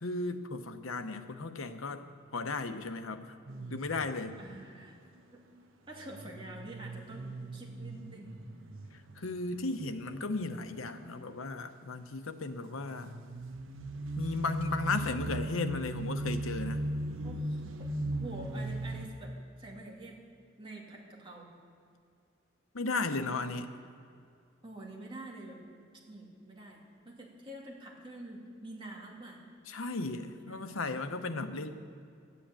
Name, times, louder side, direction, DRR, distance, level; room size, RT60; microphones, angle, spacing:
voice 1, 0.0-2.1 2.3-3.3 3.7-4.4 9.2-13.2 14.2-16.8 22.7-23.7 29.7-31.7, left 3 dB, 90° left, 8 dB, 0.9 m, -35 dB
sound 1, 3.5-4.4 5.9-10.5 10.8-11.3 12.8-19.1, right 1 dB, 75° right, 1.0 m, -38 dB
voice 2, 4.4-5.0 5.3-5.4 5.9-8.3 17.2-19.3 19.6-20.2 20.6-21.5 24.6-25.6 26.1-29.4 30.4-30.8 31.2-31.7, right 1 dB, 25° right, -3 dB, 2.5 m, -47 dB
13.0 x 8.5 x 8.6 m, 2.4 s
head